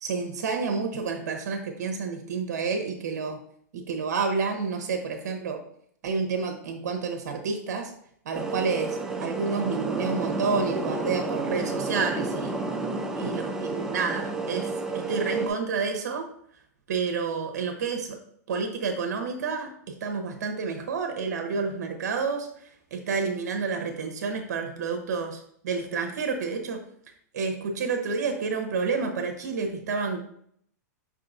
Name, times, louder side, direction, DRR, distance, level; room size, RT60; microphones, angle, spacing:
voice 1, 0.0-3.4 3.7-5.6 6.0-7.9 8.2-12.6 13.2-14.7 15.1-16.3 16.9-18.2 18.5-26.8 27.3-30.3, right 5 dB, 75° right, 4 dB, 0.8 m, -29 dB
sound 1, 8.3-15.5, right 3 dB, 5° right, 0.5 m, -30 dB
4.8 x 3.7 x 2.5 m, 0.67 s
hypercardioid pair, 125°, 9 cm